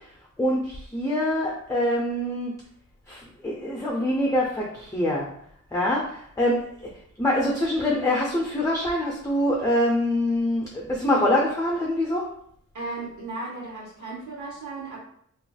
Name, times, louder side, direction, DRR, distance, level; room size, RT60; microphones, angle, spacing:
voice 1, 0.4-2.5 3.1-5.3 5.7-6.7 7.2-12.3, left 1 dB, 10° left, -2 dB, 0.6 m, -24 dB
voice 2, 12.7-15.0, right 3 dB, 70° right, -5 dB, 1.1 m, -35 dB
3.0 x 3.0 x 2.3 m, 0.66 s
cardioid pair, 65°, 31 cm